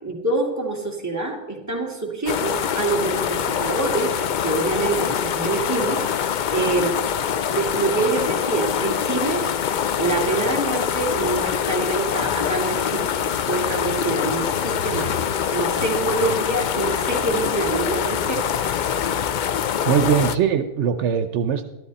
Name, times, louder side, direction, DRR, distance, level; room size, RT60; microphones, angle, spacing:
voice 1, 0.0-4.1 4.4-6.0 6.5-7.0 7.5-9.5 10.0-15.1 15.5-18.4, right 3 dB, 15° right, -1 dB, 2.5 m, -25 dB
sound 1, 2.3-20.4, left 8 dB, 55° left, 0.5 m, -24 dB
voice 2, 19.8-21.7, right 8 dB, 75° right, 9 dB, 1.0 m, -21 dB
13.0 x 13.0 x 4.2 m, 1.0 s
omnidirectional pair, 1.2 m